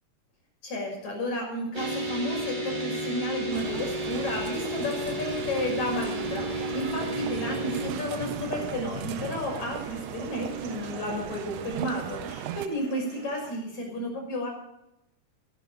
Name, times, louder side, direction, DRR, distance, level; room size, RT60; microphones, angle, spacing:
voice 1, 0.6-14.5, left 1 dB, 60° left, 1 dB, 7.3 m, -32 dB
sound 1, 1.7-7.9, equal, 30° right, 0.8 m, -32 dB
sound 2, 2.7-13.6, right 1 dB, 55° right, 5.7 m, -45 dB
sound 3, 3.5-12.7, right 11 dB, 75° right, 1.5 m, -38 dB
19.5 x 11.5 x 5.3 m, 0.85 s
omnidirectional pair, 3.8 m